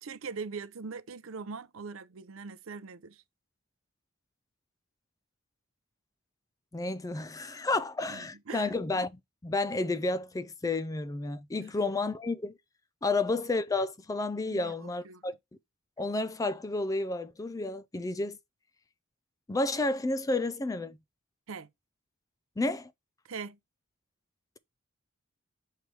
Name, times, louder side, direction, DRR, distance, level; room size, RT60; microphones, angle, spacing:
voice 1, 0.0-3.2 8.1-8.8 11.6-11.7 13.1-13.2 14.5-15.2 21.5-21.7 23.3-23.6, right 5 dB, 70° right, 0.6 m, -42 dB
voice 2, 6.7-12.6 13.0-15.3 16.0-18.4 19.5-21.0 22.6-22.9, left 2 dB, 15° left, 0.4 m, -31 dB
6.6 x 4.6 x 3.2 m
head